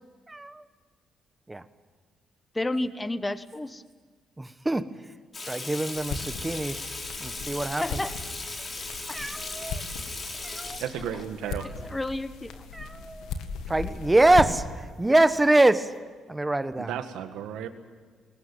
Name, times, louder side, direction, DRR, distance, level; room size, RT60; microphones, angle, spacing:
voice 1, 0.3-0.6 1.5-1.6 4.4-4.8 5.4-6.8 7.2-8.0 9.1-9.8 10.4-10.8 12.7-13.3 13.7-15.9 16.3-16.9, right 2 dB, 15° right, 12 dB, 1.3 m, -24 dB
voice 2, 2.5-3.8 7.8-8.1 9.1-9.2 11.9-12.6, left 2 dB, 15° left, 12 dB, 1.1 m, -31 dB
Water tap faucet / Sink (filling or washing), 5.3-11.2, left 3 dB, 30° left, 4.1 m, -37 dB
sound 1, 6.0-14.8, left 5 dB, 85° left, 2.0 m, -38 dB
voice 3, 10.8-11.7 16.7-17.7, right 9 dB, 90° right, 8 dB, 1.8 m, -34 dB
21.0 x 19.5 x 9.2 m, 1.6 s
cardioid pair, 90°, 0 cm